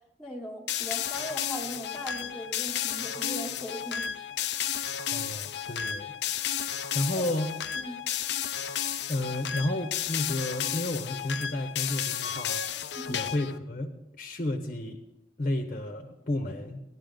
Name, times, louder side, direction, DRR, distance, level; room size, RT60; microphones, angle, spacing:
voice 1, 0.2-4.1 7.1-7.3 7.7-8.0 13.0-13.2, left 1 dB, ahead, -7 dB, 1.2 m, -39 dB
sound 1, 0.7-13.6, left 9 dB, 70° left, 0.5 m, -32 dB
voice 2, 5.1-6.1 6.9-7.5 9.1-12.6 13.1-15.0 15.4-16.8, left 1 dB, 45° left, 4 dB, 0.9 m, -32 dB
15.0 x 11.0 x 3.9 m, 0.91 s
head